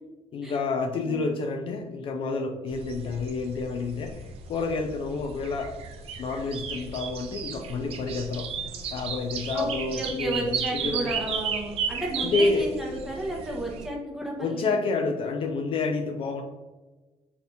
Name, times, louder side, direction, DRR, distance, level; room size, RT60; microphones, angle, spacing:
voice 1, 0.3-5.8 6.2-8.5 8.9-11.1 12.2-12.7 14.4-16.4, left 3 dB, 45° left, 5 dB, 0.4 m, -29 dB
sound 1, 2.7-13.9, right 6 dB, 55° right, 0.5 m, -34 dB
voice 2, 9.5-14.8, right 1 dB, 5° right, -3 dB, 1.0 m, -33 dB
4.2 x 3.2 x 2.7 m, 1.2 s
cardioid pair, 145°, 12 cm